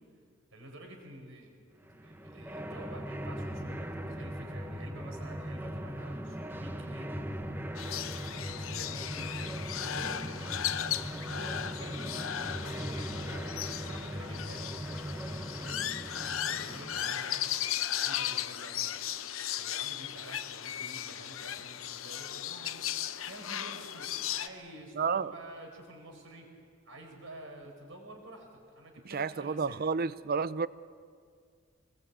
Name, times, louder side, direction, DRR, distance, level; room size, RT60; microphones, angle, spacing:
voice 1, 0.5-7.1 7.8-10.6 11.2-14.7 15.2-26.5 26.8-29.9, right 1 dB, 70° right, 5.0 m, -49 dB
sound 1, 1.9-17.6, equal, 10° right, 1.1 m, -39 dB
sound 2, 7.8-24.5, left 11 dB, 75° left, 0.8 m, -36 dB
voice 2, 24.9-25.3 29.0-30.7, right 5 dB, 45° right, 0.5 m, -31 dB
24.5 x 20.0 x 8.5 m
head